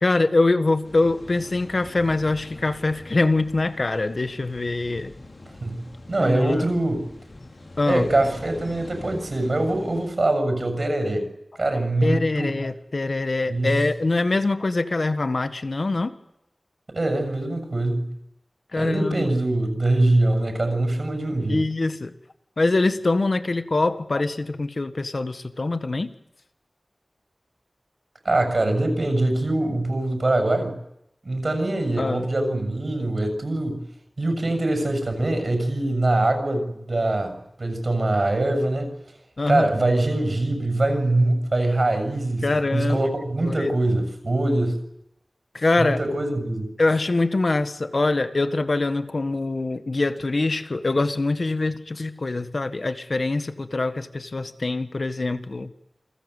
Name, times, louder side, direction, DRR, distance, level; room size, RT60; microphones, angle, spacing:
voice 1, 0.0-5.1 6.2-6.6 7.8-8.1 12.0-16.1 18.7-19.3 21.5-22.1 22.6-26.1 32.0-32.3 39.4-39.9 42.4-43.1 43.4-43.7 45.5-46.0 46.8-55.7, left 2 dB, 65° left, 10 dB, 1.6 m, -24 dB
sound 1, 0.8-10.1, left 2 dB, 85° left, 5.6 m, -43 dB
voice 2, 5.6-7.1 7.9-11.3 11.6-12.6 13.5-13.8 16.9-18.1 18.7-21.6 28.2-30.8 31.2-33.8 34.2-38.9 39.5-44.8 45.8-46.7, right 2 dB, 65° right, 6 dB, 6.8 m, -23 dB
28.5 x 20.5 x 8.2 m, 0.82 s
wide cardioid pair, 65°, 0 cm